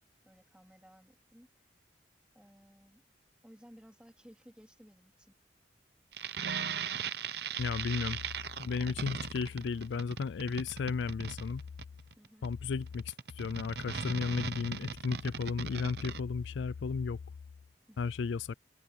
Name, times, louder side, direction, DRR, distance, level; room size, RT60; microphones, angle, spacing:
voice 1, 0.2-1.5 2.3-3.0 3.4-5.3 12.2-12.5 17.9-18.1, equal, 5° right, 2.7 m, -58 dB
sound 1, 6.1-16.2, right 6 dB, 55° right, 0.8 m, -38 dB
voice 2, 7.6-8.2 8.6-11.6 12.4-17.2 18.0-18.5, left 5 dB, 75° left, 0.4 m, -34 dB
head